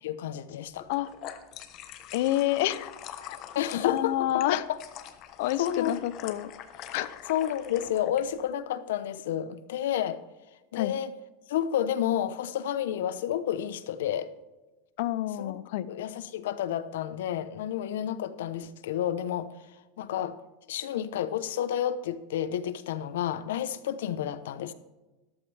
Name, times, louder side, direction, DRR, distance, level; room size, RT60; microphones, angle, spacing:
voice 1, 0.0-0.9 3.5-4.8 5.6-6.0 6.3-6.4 7.3-10.2 10.7-11.1 11.5-14.3 15.4-15.5 15.9-19.5 20.0-20.4 20.7-24.7, left 10 dB, 90° left, 13 dB, 0.9 m, -30 dB
sound 1, 0.8-8.2, left 10 dB, 35° left, 1.0 m, -43 dB
voice 2, 2.1-2.9 3.2-4.6 5.4-6.5 6.9-7.1 10.7-10.9 15.0-15.9, left 14 dB, 60° left, 16 dB, 0.7 m, -28 dB
13.5 x 12.0 x 3.4 m, 1.1 s
supercardioid pair, 165°, 0 cm